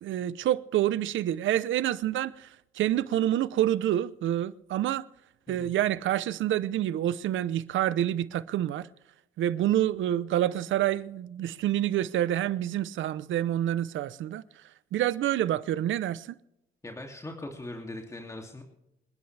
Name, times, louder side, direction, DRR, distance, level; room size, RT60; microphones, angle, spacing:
voice 1, 0.0-5.1 5.5-8.9 9.4-14.4 14.9-16.4, right 12 dB, 75° right, 0.8 m, -27 dB
voice 2, 16.8-18.6, left 1 dB, 15° left, 2.7 m, -40 dB
27.0 x 10.5 x 3.4 m
cardioid pair, 90°, 20 cm